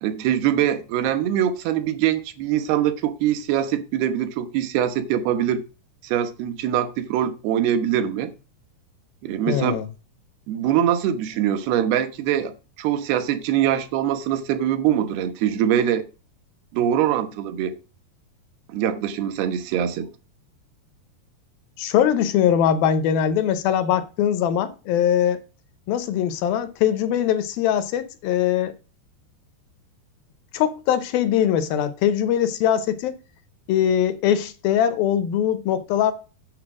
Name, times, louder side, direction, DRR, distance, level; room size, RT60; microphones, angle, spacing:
voice 1, 0.0-5.6 6.0-8.3 9.2-9.8 10.5-12.5 12.8-16.0 16.7-17.8 18.7-20.1, right 10 dB, 80° right, 3.0 m, -23 dB
voice 2, 9.5-9.9 21.8-25.4 25.9-28.7 30.5-33.2 33.7-36.1, left 9 dB, 75° left, 2.5 m, -21 dB
8.8 x 6.9 x 4.9 m
omnidirectional pair, 4.6 m